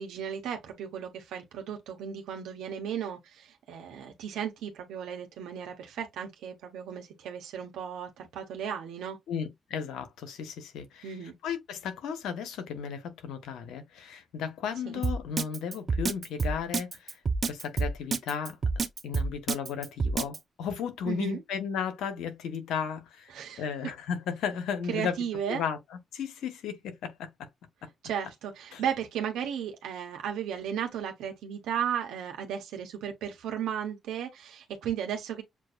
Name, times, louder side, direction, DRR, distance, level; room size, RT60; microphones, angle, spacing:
voice 1, 0.0-9.2 11.0-11.3 14.9-15.0 21.1-21.4 23.3-23.6 24.9-25.6 28.0-35.4, right 8 dB, 90° right, 1.1 m, -35 dB
voice 2, 9.3-11.2 11.4-23.3 23.6-25.1 25.5-25.8 26.1-27.5 28.7-28.8, left 7 dB, 90° left, 1.1 m, -35 dB
Drum kit, 15.0-20.4, right 4 dB, 45° right, 0.7 m, -28 dB
7.3 x 2.5 x 2.4 m
cardioid pair, 65°, 0 cm